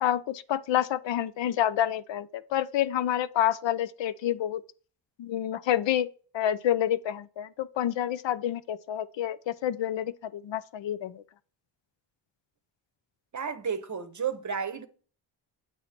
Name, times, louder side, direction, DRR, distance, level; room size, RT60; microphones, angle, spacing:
voice 1, 0.0-4.6 5.2-6.1 6.3-11.2, left 11 dB, 65° left, 0.5 m, -28 dB
voice 2, 13.3-14.9, right 6 dB, 40° right, 0.8 m, -32 dB
8.2 x 2.8 x 5.8 m
wide cardioid pair, 115°, 48 cm